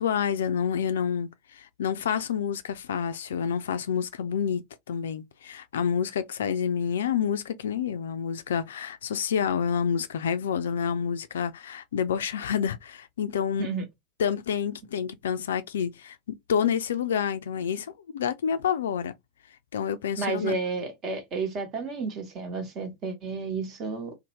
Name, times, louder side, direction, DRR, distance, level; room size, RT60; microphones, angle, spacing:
voice 1, 0.0-13.7 14.2-19.1 19.7-20.6, left 7 dB, 70° left, 0.3 m, -28 dB
voice 2, 20.2-24.2, right 4 dB, 35° right, 1.0 m, -31 dB
2.7 x 2.1 x 2.9 m
figure-of-eight pair, 85°, 0 cm